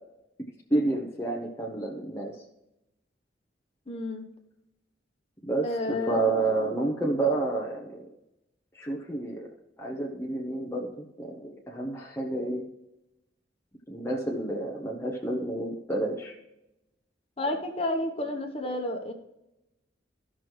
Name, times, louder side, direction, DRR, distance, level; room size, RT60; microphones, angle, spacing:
voice 1, 0.7-2.3 5.4-8.1 8.7-9.5 9.8-12.7 13.9-16.4, right 2 dB, 15° left, -2 dB, 1.0 m, -30 dB
voice 2, 3.9-4.2 5.6-6.4 17.4-19.1, left 1 dB, 35° left, 3 dB, 1.3 m, -31 dB
14.5 x 6.2 x 3.1 m, 0.89 s
head